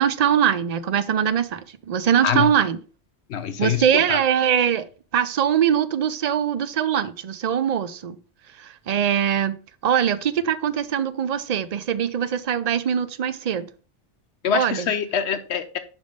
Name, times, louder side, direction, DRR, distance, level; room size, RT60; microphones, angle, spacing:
voice 1, 0.0-2.8 3.6-4.9 5.1-8.2 8.6-9.6 9.8-13.7 14.5-14.9, right 8 dB, 55° right, 0.4 m, -22 dB
voice 2, 3.3-4.2 14.4-15.8, left 8 dB, 70° left, 0.9 m, -25 dB
5.3 x 5.3 x 5.2 m
omnidirectional pair, 1.2 m